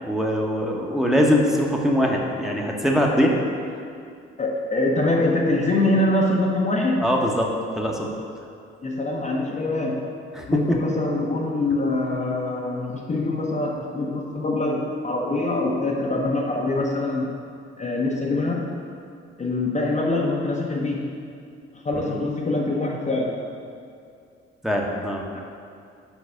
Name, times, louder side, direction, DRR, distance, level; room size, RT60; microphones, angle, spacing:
voice 1, 0.0-3.4 7.0-8.1 10.3-10.8 24.6-25.2, equal, ahead, -1 dB, 1.1 m, -22 dB
voice 2, 4.4-7.1 8.8-10.2 10.5-17.3 17.8-18.7 19.4-21.2 21.8-23.4 25.3-25.4, left 2 dB, 25° left, -2 dB, 1.0 m, -24 dB
6.2 x 5.2 x 6.3 m, 2.4 s
figure-of-eight pair, 45°, 31 cm